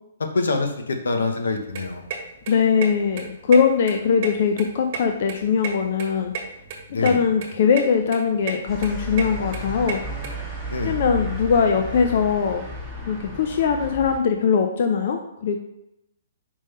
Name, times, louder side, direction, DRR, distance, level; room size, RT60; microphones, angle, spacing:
voice 1, 0.2-2.1 6.9-7.2 10.7-11.0, left 3 dB, 85° left, 4 dB, 1.0 m, -25 dB
sound 1, 1.5-10.3, right 6 dB, 40° right, 1.4 m, -34 dB
voice 2, 2.5-6.3 7.0-10.0 10.8-12.6 13.1-15.6, left 6 dB, 55° left, 5 dB, 0.6 m, -21 dB
sound 2, 8.7-14.2, equal, 5° left, 1.4 m, -33 dB
5.3 x 3.5 x 5.4 m, 0.81 s
hypercardioid pair, 145°, 0 cm